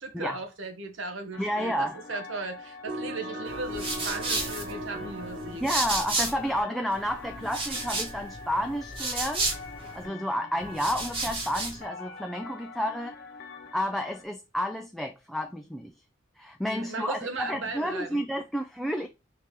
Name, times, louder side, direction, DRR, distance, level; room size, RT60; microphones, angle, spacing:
voice 1, 0.0-5.6 16.7-18.2, right 3 dB, 75° right, 1.0 m, -37 dB
sound 1, 1.3-14.2, left 4 dB, 60° left, 0.9 m, -45 dB
voice 2, 1.4-2.0 5.6-9.5 9.9-13.1 13.7-16.0 16.4-19.1, equal, ahead, 0.3 m, -31 dB
sound 2, 2.9-6.7, right 1 dB, 50° right, 0.5 m, -38 dB
sound 3, 3.5-6.6 6.9-10.1 10.6-11.8, right 2 dB, 30° right, 1.2 m, -33 dB
4.6 x 2.9 x 3.5 m
head